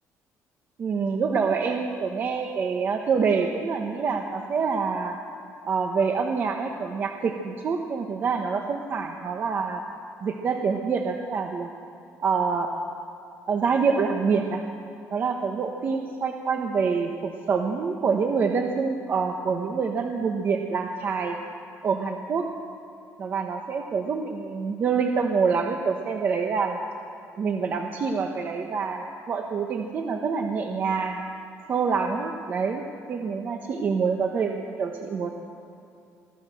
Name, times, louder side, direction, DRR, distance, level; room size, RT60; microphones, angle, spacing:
voice 1, 0.8-5.2 5.7-9.8 10.2-11.7 12.2-12.7 13.5-14.6 15.1-21.4 21.8-22.5 23.2-26.8 27.4-31.2 31.7-32.8 33.1-35.3, right 5 dB, 35° right, 3 dB, 1.1 m, -26 dB
23.0 x 15.5 x 7.7 m, 2.7 s
cardioid pair, 175°, 6 cm